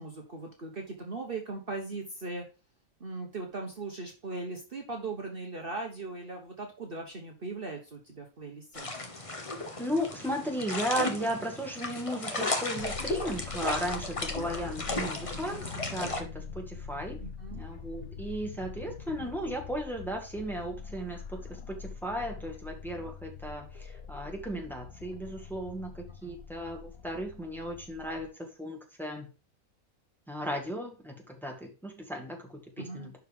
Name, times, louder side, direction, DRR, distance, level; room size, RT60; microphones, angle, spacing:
voice 1, 0.0-2.4 3.0-8.9 17.2-17.7 26.2-26.3 32.8-33.1, right 3 dB, 40° right, 2 dB, 1.3 m, -39 dB
sound 1, 8.7-16.2, left 2 dB, 25° left, 1.1 m, -35 dB
voice 2, 9.8-17.2 17.5-21.4 21.7-29.3 30.3-33.2, equal, ahead, 1 dB, 1.8 m, -35 dB
sound 2, 12.8-28.3, left 6 dB, 90° left, 1.5 m, -44 dB
11.0 x 4.8 x 3.5 m, 0.32 s
omnidirectional pair, 1.5 m